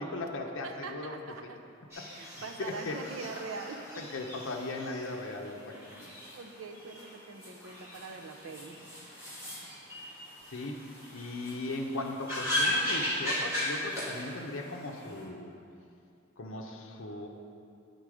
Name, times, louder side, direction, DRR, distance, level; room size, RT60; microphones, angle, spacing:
voice 1, 0.0-1.2 1.4-1.5 2.0-3.0 4.0-6.1 10.5-15.5 16.4-17.3, left 2 dB, 75° left, 1 dB, 0.6 m, -38 dB
voice 2, 0.6-1.6 2.2-4.0 5.7-8.8, right 4 dB, 85° right, 5 dB, 0.6 m, -43 dB
sound 1, 1.9-15.2, left 1 dB, 15° right, 1.6 m, -37 dB
9.3 x 4.0 x 4.8 m, 2.5 s
head